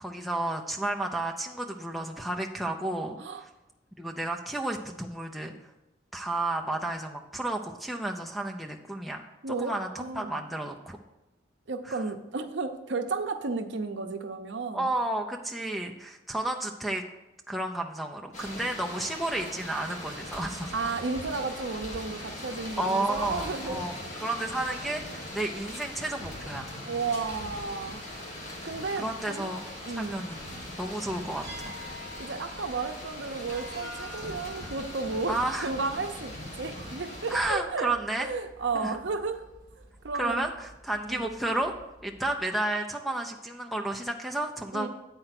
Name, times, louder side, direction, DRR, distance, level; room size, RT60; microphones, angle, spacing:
voice 1, 0.0-3.5 4.0-5.5 6.1-11.0 11.9-12.0 14.7-17.0 17.5-20.7 22.8-26.7 29.0-29.6 30.0-30.4 30.8-31.7 35.3-35.7 37.3-38.3 38.7-39.0 40.2-41.7 42.0-44.9, right 2 dB, ahead, 0 dB, 0.5 m, -32 dB
voice 2, 9.4-10.4 11.7-14.9 20.7-23.8 26.8-28.1 28.6-29.5 29.9-30.2 32.2-35.4 35.6-36.3 36.6-37.9 38.2-39.4 40.0-40.4 41.1-41.3 44.7-44.9, right 4 dB, 75° right, 7 dB, 0.7 m, -33 dB
sound 1, 18.3-37.5, left 1 dB, 40° left, 1.7 m, -40 dB
sound 2, 31.4-42.5, equal, 20° right, 1.7 m, -48 dB
8.8 x 4.5 x 5.8 m, 0.96 s
head